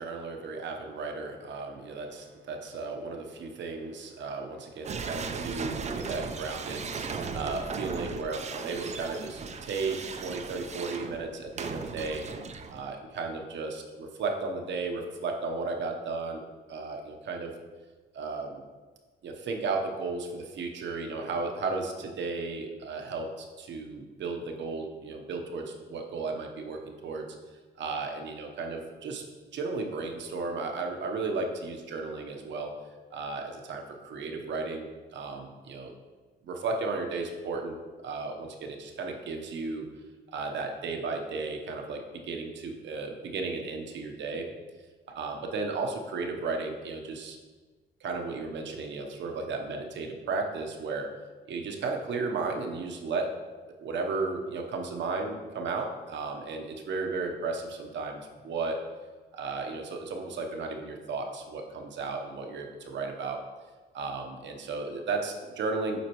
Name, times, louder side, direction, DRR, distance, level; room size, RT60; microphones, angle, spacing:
voice 1, 0.0-12.2 12.7-16.4 16.7-17.5 18.1-18.6 19.2-27.3 27.8-29.2 29.5-32.7 33.1-34.9 35.1-35.9 36.4-37.8 38.0-39.9 40.3-44.5 45.1-47.4 48.0-51.1 51.5-53.3 53.8-58.8 59.3-63.4 63.9-66.0, right 3 dB, 65° right, 3 dB, 0.9 m, -34 dB
sound 1, 4.8-13.0, right 5 dB, 35° right, 0.5 m, -37 dB
8.2 x 4.3 x 3.0 m, 1.4 s
cardioid pair, 90°, 20 cm